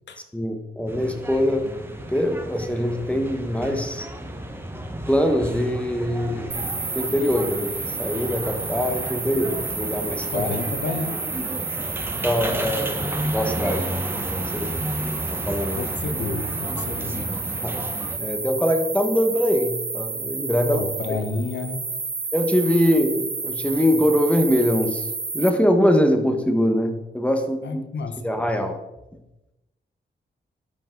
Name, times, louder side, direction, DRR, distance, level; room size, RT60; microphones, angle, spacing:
voice 1, 0.3-1.7 2.1-4.1 5.1-10.5 12.2-13.9 14.5-14.7 15.3-15.8 17.6-17.8 18.2-20.8 22.3-27.8 28.2-28.8, equal, 5° left, 5 dB, 1.3 m, -23 dB
sound 1, 0.9-18.2, right 1 dB, 10° right, 1.1 m, -32 dB
sound 2, 6.5-25.5, right 4 dB, 25° right, 0.5 m, -31 dB
voice 2, 10.3-11.2 15.7-17.3 20.6-21.8 27.6-28.2, left 3 dB, 70° left, 7 dB, 1.0 m, -30 dB
12.5 x 5.3 x 3.9 m, 0.99 s
cardioid pair, 70°, 19 cm